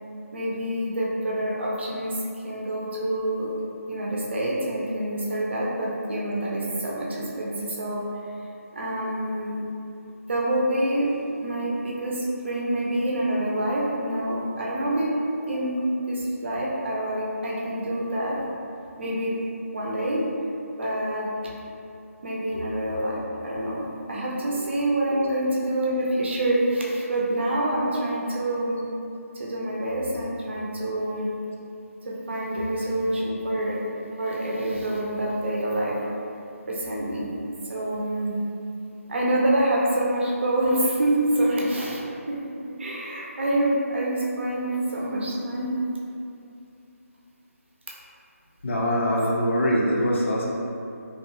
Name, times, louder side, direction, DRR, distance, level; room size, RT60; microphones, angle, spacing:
voice 1, 0.3-3.5 3.9-8.0 8.7-9.6 10.3-15.1 15.4-18.4 19.0-19.4 19.7-20.2 20.8-21.3 22.2-28.8 29.3-31.3 32.0-33.8 34.2-36.0 36.7-37.3 37.7-38.4 39.1-42.0 42.3-45.9 50.4-50.5, right 1 dB, 50° right, -4 dB, 0.5 m, -26 dB
voice 2, 48.6-50.5, equal, 50° left, -4 dB, 0.5 m, -24 dB
2.6 x 2.2 x 2.9 m, 2.6 s
figure-of-eight pair, 165°, 8 cm